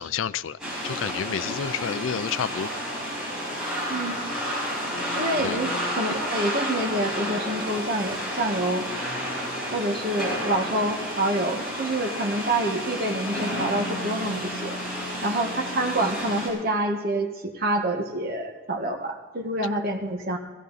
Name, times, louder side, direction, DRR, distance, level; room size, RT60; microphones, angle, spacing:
voice 1, 0.0-2.7 5.4-5.6 15.3-15.4, left 7 dB, 75° left, 17 dB, 0.4 m, -30 dB
sound 1, 0.6-16.5, equal, 5° right, 6.0 m, -31 dB
voice 2, 3.9-4.2 5.1-8.9 9.7-14.8 15.2-20.4, right 1 dB, 45° right, 2 dB, 1.5 m, -27 dB
17.0 x 16.0 x 4.1 m, 1.3 s
head